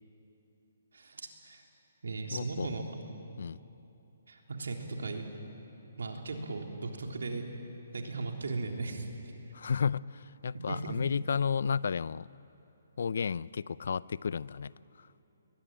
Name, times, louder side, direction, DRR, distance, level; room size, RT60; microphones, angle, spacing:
voice 1, 0.9-1.6 2.0-2.9 4.3-5.2 6.0-7.4 7.9-9.1 10.7-11.0, right 3 dB, 85° right, 2 dB, 3.4 m, -37 dB
voice 2, 2.3-2.7 3.4-3.6 9.5-12.3 13.0-14.7 15.0-15.1, left 6 dB, 70° left, 21 dB, 0.5 m, -32 dB
21.5 x 21.0 x 9.2 m, 2.9 s
hypercardioid pair, 155°, 0 cm